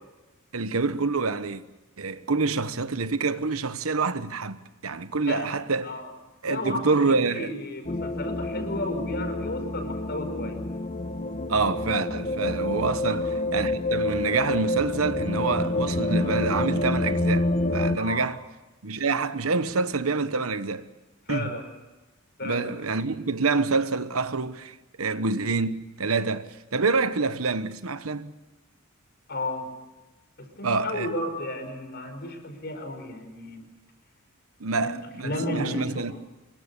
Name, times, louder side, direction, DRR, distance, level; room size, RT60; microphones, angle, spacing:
voice 1, 0.5-1.6 2.0-5.9 6.4-7.5 11.5-13.3 13.5-18.4 18.8-20.9 21.3-21.5 22.4-28.3 30.6-31.1 34.6-36.1, right 4 dB, 85° right, 1.2 m, -27 dB
voice 2, 5.3-6.1 6.5-10.6 13.0-13.2 18.0-18.3 21.3-21.6 22.4-22.7 29.3-29.7 30.4-33.6 34.7-34.9 35.2-36.1, left 1 dB, 50° left, 5.3 m, -33 dB
sound 1, 7.8-18.0, left 2 dB, 35° left, 1.2 m, -28 dB
26.0 x 23.0 x 7.0 m
head